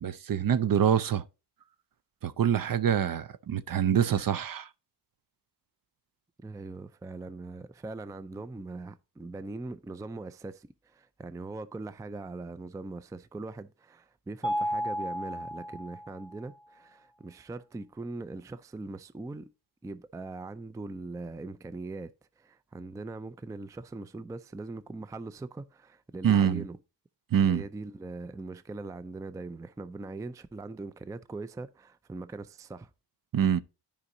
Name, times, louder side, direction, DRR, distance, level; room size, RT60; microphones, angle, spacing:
voice 1, 0.0-1.2 2.2-4.7 26.2-26.6 27.3-27.6 33.3-33.6, right 8 dB, 55° right, 0.6 m, -25 dB
voice 2, 6.4-19.5 19.8-26.8 27.4-32.9, right 3 dB, 10° right, 0.3 m, -41 dB
Mallet percussion, 14.4-16.4, equal, 15° left, 0.8 m, -33 dB
12.5 x 5.1 x 2.6 m
wide cardioid pair, 130°, 41 cm